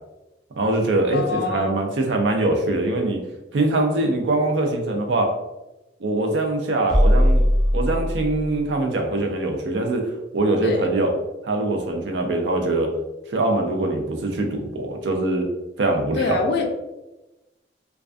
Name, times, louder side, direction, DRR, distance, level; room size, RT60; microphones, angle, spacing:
voice 1, 0.6-3.2 3.5-5.3 6.0-7.4 7.7-11.1 11.4-12.9 13.3-15.5 15.8-16.4, right 2 dB, 80° right, 3 dB, 0.5 m, -23 dB
voice 2, 1.1-1.7 10.6-10.9 16.2-16.7, left 3 dB, 65° left, 3 dB, 0.4 m, -24 dB
sound 1, 6.9-8.7, equal, ahead, 0.4 m, -19 dB
2.3 x 2.3 x 2.4 m, 1.0 s
head